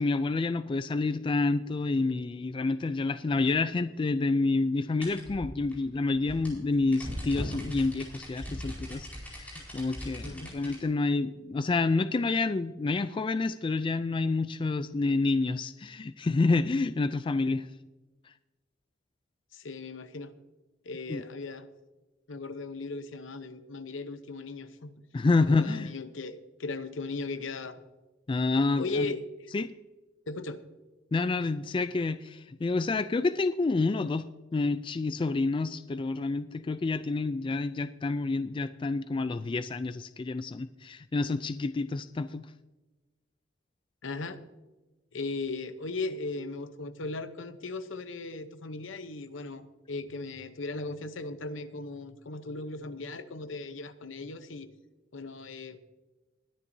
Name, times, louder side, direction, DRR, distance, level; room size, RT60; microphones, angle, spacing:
voice 1, 0.0-17.7 21.1-21.2 25.1-25.9 28.3-29.1 29.5-29.7 31.1-34.3 34.5-42.5, left 3 dB, 25° left, 12 dB, 0.3 m, -28 dB
sound 1, 5.0-10.8, equal, 10° left, 4.5 m, -40 dB
voice 2, 10.2-10.6 19.5-20.3 20.8-21.7 22.3-25.0 25.4-27.8 28.8-29.2 30.3-30.6 44.0-44.4 45.1-54.7 55.1-55.8, left 3 dB, 75° left, 11 dB, 0.8 m, -37 dB
21.5 x 10.0 x 2.7 m, 1.2 s
head